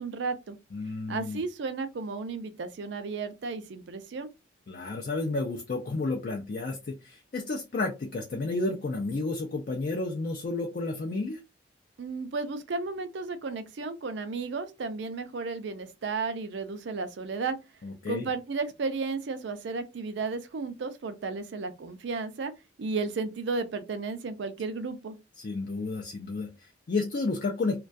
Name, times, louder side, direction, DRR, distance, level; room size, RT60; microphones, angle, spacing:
voice 1, 0.0-0.6 1.1-4.3 12.0-17.6 18.1-22.5 22.8-25.2, right 4 dB, 65° right, 0.4 m, -33 dB
voice 2, 0.7-1.4 4.7-11.4 17.8-18.2 25.4-27.8, left 3 dB, 45° left, 0.4 m, -31 dB
2.2 x 2.2 x 2.5 m
head